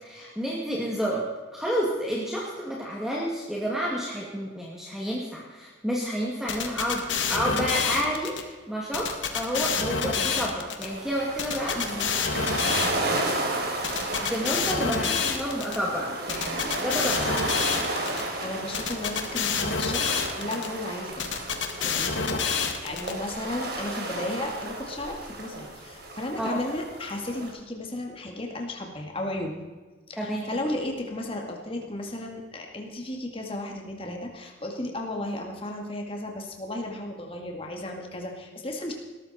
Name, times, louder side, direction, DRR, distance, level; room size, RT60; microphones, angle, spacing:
voice 1, 0.0-1.2 1.5-7.0 7.3-11.9 14.2-17.5 26.4-26.5 30.2-30.5, equal, ahead, -4 dB, 2.2 m, -30 dB
sound 1, 6.5-8.4 8.9-10.9 11.4-13.3 13.8-15.8 16.3-18.2 18.7-20.7 21.2-23.1, left 5 dB, 80° left, 1.8 m, -28 dB
sound 2, 10.8-27.5, right 2 dB, 55° right, 3.5 m, -33 dB
voice 2, 11.7-12.3 12.6-13.1 14.7-14.9 18.4-21.3 21.8-29.5 30.1-38.9, left 1 dB, 30° left, 1 dB, 2.2 m, -34 dB
20.5 x 13.0 x 4.3 m, 1.3 s
head